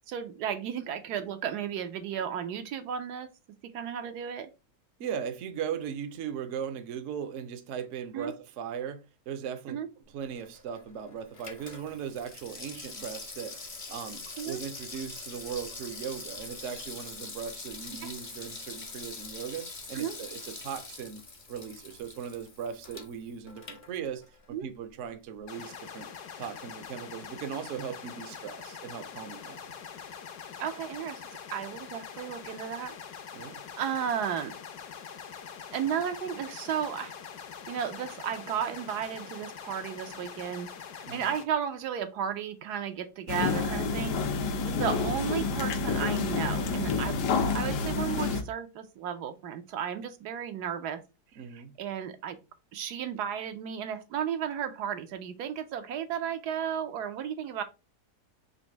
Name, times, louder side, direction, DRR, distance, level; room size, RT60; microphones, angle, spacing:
voice 1, 0.1-3.3 3.7-4.5 8.1-8.3 9.7-9.9 14.4-14.6 18.0-18.1 19.9-20.2 24.5-24.7 30.6-31.2 31.5-32.9 33.8-34.5 35.7-37.1 37.7-40.7 41.1-44.2 44.6-51.0 51.3-52.4 52.7-57.6, right 8 dB, 80° right, 1.2 m, -34 dB
voice 2, 5.0-9.8 10.1-21.2 21.5-24.2 24.5-26.1 26.4-29.7 33.3-33.6 41.0-41.3 44.6-44.8 51.4-51.7, right 8 dB, 60° right, 0.8 m, -38 dB
Water tap faucet / Sink (filling or washing), 10.2-24.5 24.8-24.9, left 3 dB, 40° left, 0.4 m, -44 dB
sound 1, 25.5-41.4, left 7 dB, 70° left, 1.2 m, -44 dB
sound 2, 43.3-48.4, left 4 dB, 90° left, 1.3 m, -29 dB
4.1 x 2.6 x 4.4 m
omnidirectional pair, 1.7 m